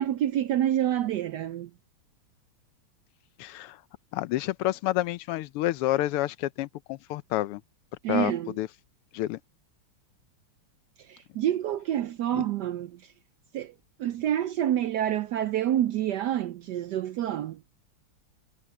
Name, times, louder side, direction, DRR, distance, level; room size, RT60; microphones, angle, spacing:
voice 1, 0.0-1.7 8.0-8.5 11.1-13.0 13.5-13.7 14.0-17.6, right 11 dB, 80° right, 0.9 m, -27 dB
voice 2, 3.4-3.8 4.1-7.6 8.1-8.7 9.1-9.4 12.3-12.4, left 15 dB, 90° left, 1.6 m, -29 dB
omnidirectional pair, 2.4 m